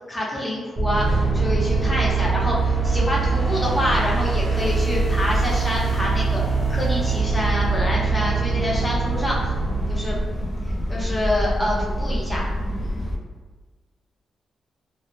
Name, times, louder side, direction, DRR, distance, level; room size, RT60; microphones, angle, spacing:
voice 1, 0.1-6.4 6.7-9.6 9.9-10.2 10.9-12.4, left 1 dB, 15° left, -4 dB, 0.7 m, -26 dB
sound 1, 0.8-10.6, right 6 dB, 25° right, 0.6 m, -25 dB
sound 2, 0.9-13.2, equal, 40° left, 0.3 m, -26 dB
2.1 x 2.0 x 3.1 m, 1.4 s
cardioid pair, 85°, 0 cm